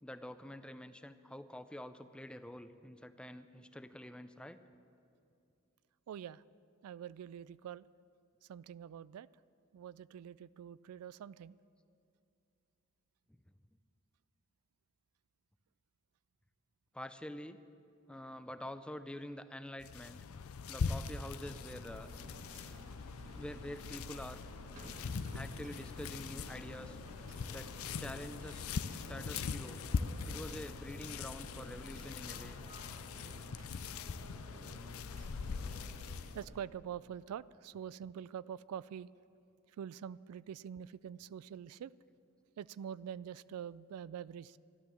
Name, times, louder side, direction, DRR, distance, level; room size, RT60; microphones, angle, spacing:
voice 1, 0.0-4.6 13.3-13.4 16.9-17.6 18.1-20.2 20.7-22.1 23.3-24.4 25.3-27.0 27.5-27.7 28.0-28.7 29.1-29.8 30.2-32.6, left 1 dB, 5° left, 11 dB, 0.4 m, -47 dB
voice 2, 6.1-6.4 6.8-7.9 8.4-9.3 9.7-11.6 22.7-22.9 23.9-24.0 25.2-25.4 36.3-39.1 39.7-41.9 42.6-44.6, right 9 dB, 90° right, 18 dB, 0.3 m, -45 dB
sound 1, 19.8-36.4, left 5 dB, 75° left, 0.5 m, -42 dB
sound 2, 21.5-36.6, equal, 35° right, 1.6 m, -53 dB
12.5 x 12.5 x 7.3 m, 2.5 s
head